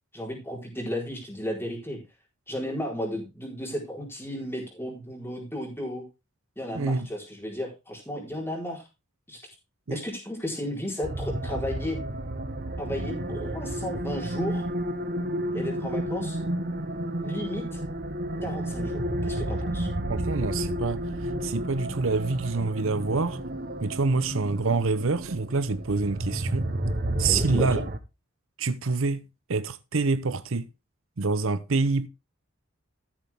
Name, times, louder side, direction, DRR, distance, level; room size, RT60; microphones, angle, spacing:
voice 1, 0.1-2.0 2.5-6.0 6.6-8.9 9.3-9.4 9.9-12.0 12.8-14.6 15.5-16.4 17.2-17.8 18.4-19.9 27.3-27.8, left 1 dB, 10° left, 4.4 m, -34 dB
voice 2, 6.7-7.1 9.9-10.0 20.1-23.4 23.8-26.7 27.2-27.8 28.6-29.2 29.5-30.7 31.2-32.1, right 3 dB, 70° right, 0.7 m, -26 dB
sound 1, 11.0-28.0, right 1 dB, 40° right, 1.0 m, -31 dB
13.5 x 7.4 x 3.5 m
head